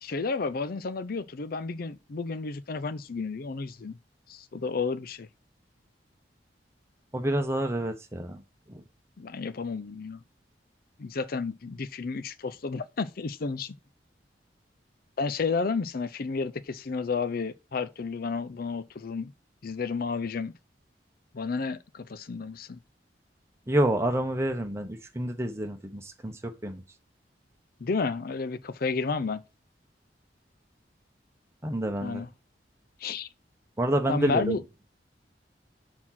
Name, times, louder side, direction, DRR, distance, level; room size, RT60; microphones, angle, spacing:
voice 1, 0.0-4.0 4.3-5.3 9.2-10.2 11.0-13.8 15.2-19.3 19.6-20.5 21.3-22.8 27.8-29.4 32.0-32.3 33.0-33.3 34.1-34.6, left 4 dB, 55° left, 0.5 m, -31 dB
voice 2, 7.1-8.8 23.7-26.8 31.6-32.2 33.8-34.6, right 1 dB, 15° right, 1.0 m, -28 dB
6.1 x 4.3 x 5.7 m
head